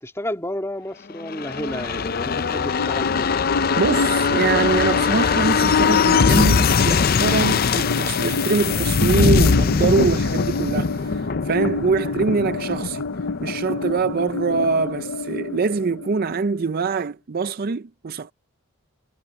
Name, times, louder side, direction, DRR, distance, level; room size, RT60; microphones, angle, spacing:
voice 1, 0.0-3.4, left 1 dB, 10° left, 2.9 m, -31 dB
sound 1, 1.2-14.7 15.0-15.1, left 5 dB, 40° left, 0.5 m, -21 dB
sound 2, 2.0-16.9, left 3 dB, 80° left, 0.7 m, -30 dB
voice 2, 3.8-13.0 13.4-18.3, right 4 dB, 40° right, 0.4 m, -23 dB
head